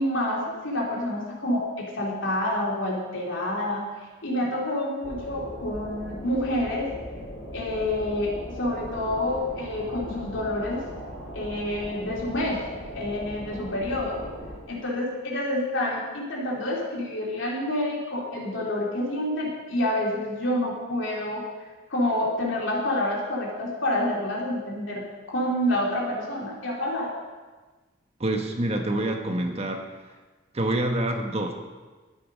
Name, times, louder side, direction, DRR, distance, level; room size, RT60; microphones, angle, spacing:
voice 1, 0.0-3.8 4.2-6.9 7.5-10.8 11.3-12.6 12.9-14.2 14.7-21.4 21.9-25.0 25.3-27.2, left 1 dB, 85° left, -3 dB, 3.3 m, -28 dB
sound 1, 5.0-14.6, equal, 60° left, 3.7 m, -39 dB
voice 2, 28.2-29.8 30.5-31.5, right 1 dB, 35° right, 4 dB, 1.2 m, -26 dB
12.0 x 9.4 x 5.2 m, 1.3 s
head